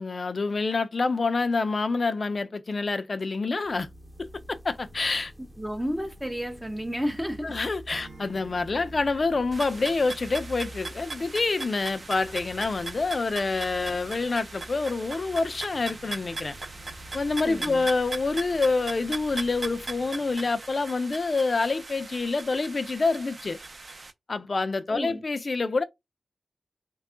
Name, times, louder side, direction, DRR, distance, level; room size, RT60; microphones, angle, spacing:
voice 1, 0.0-3.9 4.2-5.3 7.4-16.6 17.1-23.6 24.3-25.8, left 3 dB, 55° left, 0.5 m, -27 dB
sound 1, 3.7-21.2, equal, 25° right, 0.9 m, -48 dB
voice 2, 5.4-7.6 17.4-17.9 24.9-25.2, equal, 5° right, 0.6 m, -32 dB
Acoustic guitar / Strum, 7.9-11.0, right 3 dB, 75° right, 1.0 m, -52 dB
sound 2, 9.5-24.1, right 3 dB, 55° right, 0.6 m, -39 dB
3.4 x 2.3 x 3.7 m
cardioid pair, 55°, 0 cm